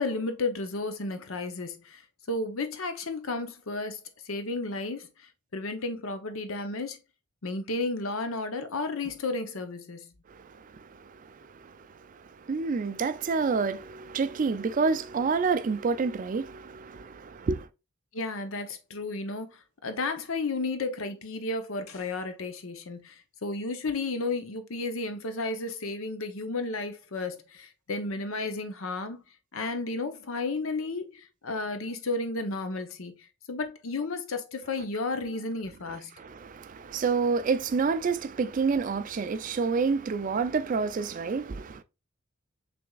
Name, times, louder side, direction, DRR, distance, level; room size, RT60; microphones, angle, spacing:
voice 1, 0.0-2.0 2.3-4.0 4.2-7.0 7.4-10.1 18.1-19.5 19.8-29.2 29.5-33.1 33.5-36.2, left 3 dB, 75° left, 0.8 m, -33 dB
voice 2, 10.3-17.7 36.2-41.8, right 4 dB, 40° right, 0.4 m, -29 dB
6.0 x 3.5 x 2.3 m
head